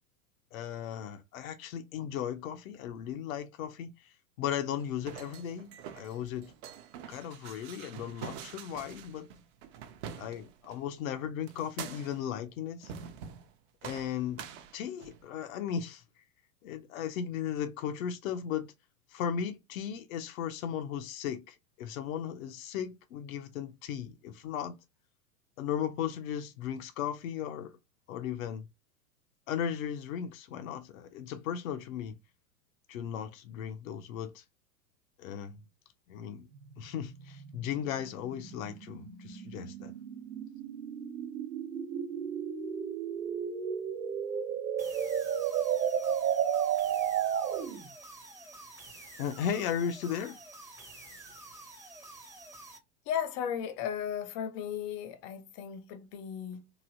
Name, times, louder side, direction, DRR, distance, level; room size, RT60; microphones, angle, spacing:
voice 1, 0.5-4.1 4.4-6.5 7.1-9.3 10.2-12.9 13.8-14.4 14.7-16.0 16.6-18.7 19.1-24.8 25.6-27.7 28.1-28.7 29.5-32.2 32.9-34.4 35.2-35.6 36.1-36.5 36.8-39.9 49.2-50.4, left 9 dB, 60° left, 0.7 m, -36 dB
sound 1, 4.8-10.8 11.5-12.3 12.8-13.5 13.8-15.3, right 8 dB, 45° right, 0.7 m, -46 dB
sound 2, 36.5-47.9, right 8 dB, 75° right, 0.9 m, -33 dB
sound 3, 44.8-52.8, right 2 dB, 5° right, 0.7 m, -49 dB
voice 2, 53.1-56.7, left 8 dB, 25° left, 0.3 m, -35 dB
3.1 x 2.6 x 2.6 m
hypercardioid pair, 95°, 47 cm